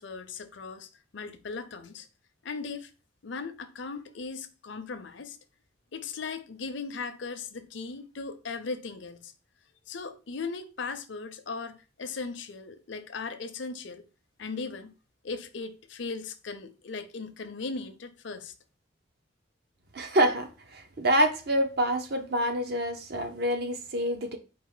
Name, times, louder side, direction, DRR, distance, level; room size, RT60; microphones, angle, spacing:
voice 1, 0.0-2.1 2.4-2.9 3.2-5.4 5.9-9.3 9.9-14.0 14.4-14.9 15.2-18.5, left 4 dB, 70° left, 0.6 m, -38 dB
voice 2, 19.9-24.4, right 1 dB, 55° right, 0.8 m, -27 dB
4.6 x 2.9 x 3.9 m
head